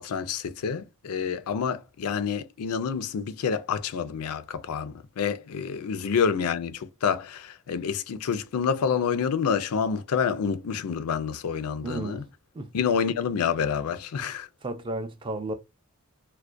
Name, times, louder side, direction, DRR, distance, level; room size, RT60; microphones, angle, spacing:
voice 1, 0.0-12.2 12.7-14.5, left 6 dB, 85° left, 0.4 m, -28 dB
voice 2, 11.8-12.7 14.6-15.5, right 2 dB, 25° right, 0.4 m, -33 dB
2.3 x 2.1 x 2.4 m
head